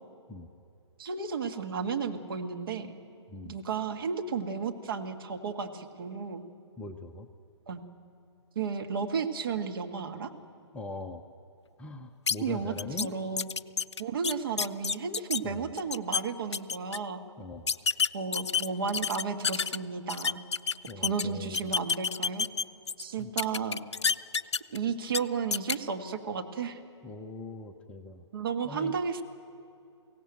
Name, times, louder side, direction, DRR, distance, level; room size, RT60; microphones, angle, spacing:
voice 1, 1.0-2.9 3.4-6.4 7.7-7.8 8.5-10.3 12.4-13.5 14.0-17.2 18.1-20.4 21.0-22.5 23.0-23.8 24.7-26.8 28.3-29.2, right 5 dB, 50° right, 5 dB, 1.7 m, -33 dB
voice 2, 6.8-7.3 10.7-11.2 11.8-13.1 15.4-15.7 17.4-17.7 20.9-21.7 23.2-23.3 27.0-28.2 28.6-29.0, left 3 dB, 10° left, 5 dB, 0.6 m, -41 dB
sound 1, 12.3-12.4 12.8-13.1 13.4-15.4 15.8-16.2 16.5-17.0 17.7-19.8 20.1-21.2 21.5-23.0 23.4-24.8 25.1-25.2 25.5-25.7, left 6 dB, 65° left, 0.5 m, -28 dB
23.0 x 17.0 x 9.0 m, 2.6 s
figure-of-eight pair, 130°, 15 cm